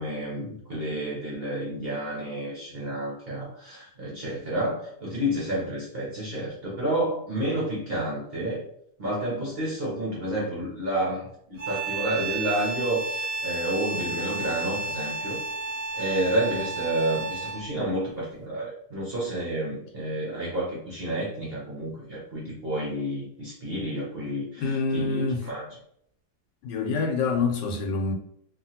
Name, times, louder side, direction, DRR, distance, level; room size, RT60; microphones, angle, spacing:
voice 1, 0.0-8.6 9.0-11.3 11.7-15.4 15.9-25.6, right 1 dB, 50° right, 0.7 m, -30 dB
sound 1, 11.6-17.8, right 3 dB, 85° right, 1.3 m, -32 dB
voice 2, 24.6-25.4 26.6-28.1, left 4 dB, 85° left, 1.2 m, -26 dB
2.9 x 2.4 x 2.7 m
omnidirectional pair, 1.8 m